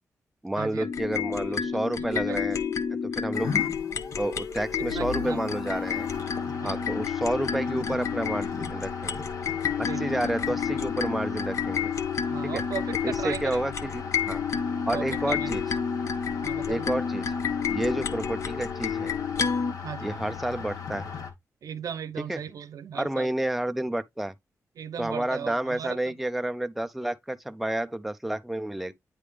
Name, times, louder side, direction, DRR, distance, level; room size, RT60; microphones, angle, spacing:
voice 1, 0.4-2.6 3.2-3.5 4.2-6.1 6.6-9.2 9.8-11.9 12.4-12.6 13.0-14.4 14.9-15.6 16.7-17.3 17.7-19.1 20.0-21.1 22.3-22.4 22.9-24.3 25.0-28.9, right 1 dB, 5° right, 0.4 m, -30 dB
sound 1, 0.8-19.7, left 6 dB, 60° left, 0.7 m, -30 dB
sound 2, 3.3-21.3, left 6 dB, 85° left, 1.5 m, -38 dB
voice 2, 4.8-5.4 6.5-6.8 9.9-10.3 12.3-13.6 14.5-15.5 16.4-16.9 19.8-20.2 21.6-23.3 24.8-26.2, right 8 dB, 85° right, 0.8 m, -37 dB
9.5 x 3.4 x 3.3 m
wide cardioid pair, 180°, 6 cm